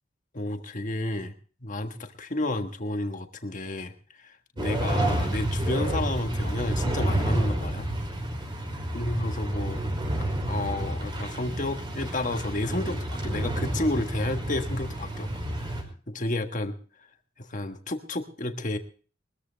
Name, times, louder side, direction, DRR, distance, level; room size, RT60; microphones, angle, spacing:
voice 1, 0.3-1.3 1.6-3.9 4.2-7.9 8.9-9.8 10.5-15.3 15.6-16.7 17.4-18.8, left 1 dB, 45° left, 6 dB, 1.5 m, -31 dB
sound 1, 4.6-15.8, right 1 dB, 25° right, 5.0 m, -29 dB
22.0 x 14.0 x 3.4 m, 0.40 s
head